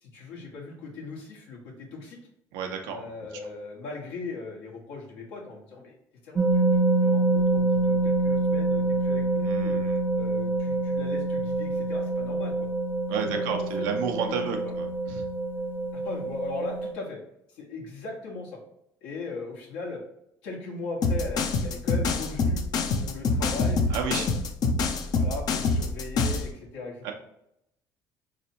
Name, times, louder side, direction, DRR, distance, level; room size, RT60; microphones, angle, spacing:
voice 1, 0.0-2.2 2.9-5.9 6.2-6.7 6.9-9.8 10.1-12.5 13.2-14.7 15.9-17.2 17.5-18.6 19.0-20.0 20.4-22.6 22.9-24.3 25.1-27.1, left 3 dB, 85° left, -1 dB, 1.3 m, -38 dB
voice 2, 2.5-3.1 9.4-10.0 13.1-15.3 23.9-24.3 27.0-27.1, right 6 dB, 85° right, 4 dB, 0.7 m, -32 dB
sound 1, 6.4-16.9, right 3 dB, 25° right, 0.6 m, -26 dB
sound 2, 21.0-26.5, left 3 dB, 55° left, 0.6 m, -25 dB
4.2 x 3.2 x 2.8 m, 0.79 s
supercardioid pair, 95°, 8 cm